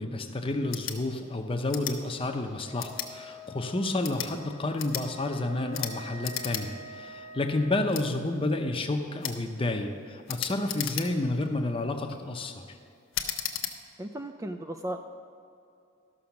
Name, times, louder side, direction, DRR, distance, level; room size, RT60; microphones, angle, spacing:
voice 1, 0.0-12.7, left 2 dB, 25° left, 5 dB, 0.7 m, -30 dB
sound 1, 0.6-1.0 1.7-2.0 2.8-3.1 3.9-4.3 4.8-5.1 5.7-5.9 6.2-6.6 7.0-7.1 7.9-8.1 9.2-9.4 10.3-11.3 11.9-12.2 13.1-13.7, left 10 dB, 70° left, 0.8 m, -34 dB
Wind instrument woodwind instrument, 2.6-7.9, equal, 65° right, 1.5 m, -46 dB
voice 2, 14.0-15.0, right 1 dB, 15° right, 6 dB, 0.3 m, -36 dB
13.0 x 6.3 x 5.9 m, 2.5 s
head